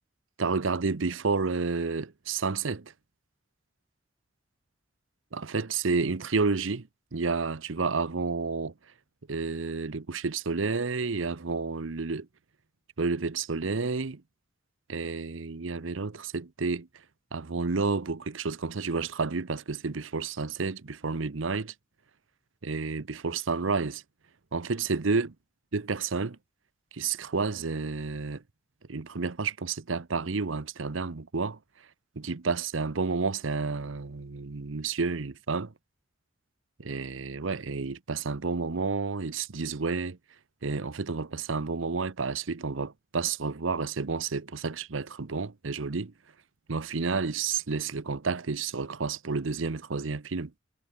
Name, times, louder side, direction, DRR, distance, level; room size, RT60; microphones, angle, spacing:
voice 1, 0.4-2.9 5.3-6.9 7.1-8.7 9.3-12.3 13.0-14.2 14.9-16.9 17.3-21.7 22.6-24.0 24.5-25.3 25.7-26.4 26.9-28.4 28.9-31.6 32.2-35.7 36.8-40.2 40.6-46.1 46.7-50.5, right 4 dB, 80° right, 0.9 m, -30 dB
head